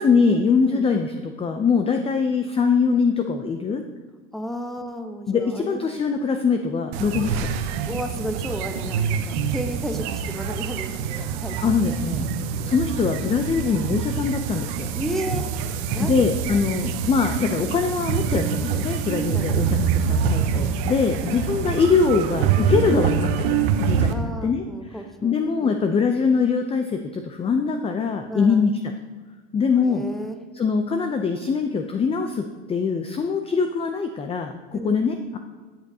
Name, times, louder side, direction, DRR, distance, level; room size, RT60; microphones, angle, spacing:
voice 1, 0.0-3.8 5.3-7.5 11.6-12.2 12.6-14.9 16.0-23.4 23.8-24.7 24.9-28.8 29.5-30.1 30.5-35.4, left 5 dB, 15° left, 6 dB, 0.5 m, -23 dB
voice 2, 4.3-6.0 7.9-12.0 15.0-15.5 15.8-16.1 19.3-19.5 24.1-25.8 28.3-28.6 29.8-30.4 34.7-34.9, equal, ahead, 6 dB, 0.9 m, -33 dB
sound 1, 6.9-24.1, right 7 dB, 65° right, 0.9 m, -25 dB
13.0 x 7.8 x 2.7 m, 1.4 s
supercardioid pair, 110°, 35 cm